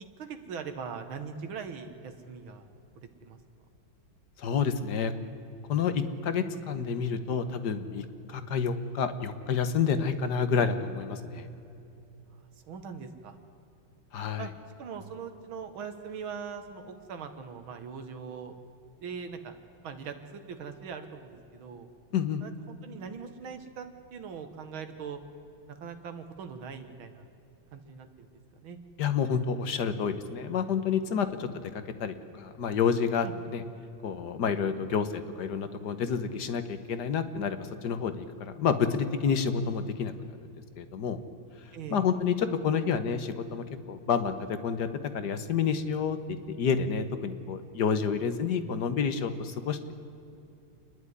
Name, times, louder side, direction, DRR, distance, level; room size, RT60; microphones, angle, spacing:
voice 1, 0.2-2.7 3.2-3.4 12.6-13.3 14.4-14.5 14.8-18.6 19.0-19.5 19.8-21.9 22.4-25.2 25.7-27.3 27.7-28.3 28.5-28.8 31.4-31.6 33.2-33.3 34.8-35.0 41.7-42.1, right 6 dB, 90° right, 7 dB, 2.2 m, -41 dB
voice 2, 4.4-5.1 5.7-11.5 14.1-14.5 22.1-22.4 29.0-33.6 34.0-40.4 40.8-41.2 41.9-44.9 45.1-46.2 46.5-49.9, left 6 dB, 60° left, 10 dB, 1.6 m, -29 dB
28.0 x 11.0 x 9.7 m, 2.8 s
omnidirectional pair, 2.2 m